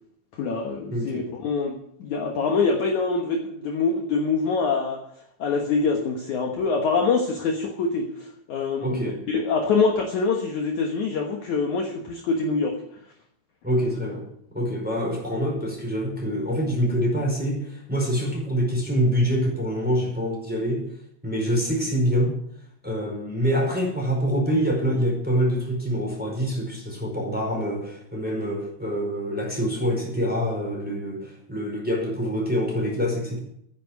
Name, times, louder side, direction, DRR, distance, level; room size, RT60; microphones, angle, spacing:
voice 1, 0.4-5.0 5.4-12.8, left 4 dB, 70° left, 2 dB, 1.8 m, -25 dB
voice 2, 0.9-1.3 8.8-9.2 13.6-14.2 14.5-20.9 21.2-22.3 22.8-33.4, equal, ahead, -2 dB, 4.2 m, -25 dB
10.0 x 9.3 x 9.3 m, 0.72 s
omnidirectional pair, 5.4 m